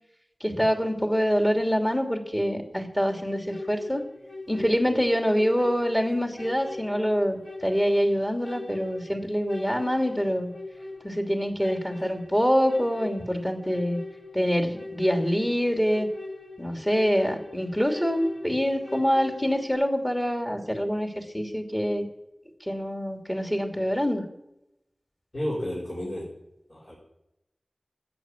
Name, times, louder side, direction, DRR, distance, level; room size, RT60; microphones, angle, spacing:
voice 1, 0.4-4.0 4.5-10.5 11.0-14.0 14.3-16.1 16.6-22.0 22.7-24.2, equal, 15° left, 3 dB, 2.8 m, -25 dB
sound 1, 3.2-19.7, left 2 dB, 80° left, 4.5 m, -42 dB
voice 2, 25.3-26.3 26.7-27.0, equal, 50° left, -7 dB, 5.3 m, -31 dB
13.5 x 9.2 x 9.2 m, 0.87 s
wide cardioid pair, 65°, 0 cm